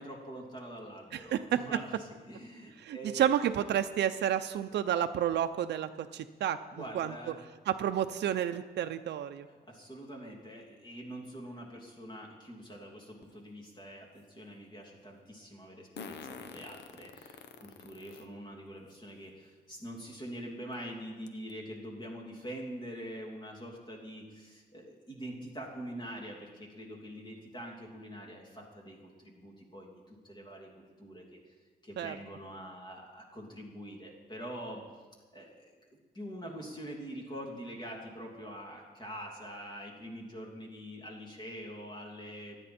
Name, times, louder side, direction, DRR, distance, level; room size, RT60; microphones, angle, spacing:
voice 1, 0.0-3.3 6.7-7.4 9.5-30.7 31.0-31.4 31.8-34.8 35.3-35.7 36.1-42.6, equal, 25° left, -1 dB, 2.8 m, -44 dB
voice 2, 1.1-1.6 2.8-6.6 6.9-7.1 7.7-9.5 32.0-32.1, right 10 dB, 90° right, 8 dB, 0.6 m, -30 dB
Fart, 13.2-13.3 16.0-18.3 18.9-19.0 20.3-20.4 20.7-20.8 21.3-21.5, left 5 dB, 90° left, 1.0 m, -46 dB
25.5 x 9.7 x 4.3 m, 1.4 s
cardioid pair, 130°, 17 cm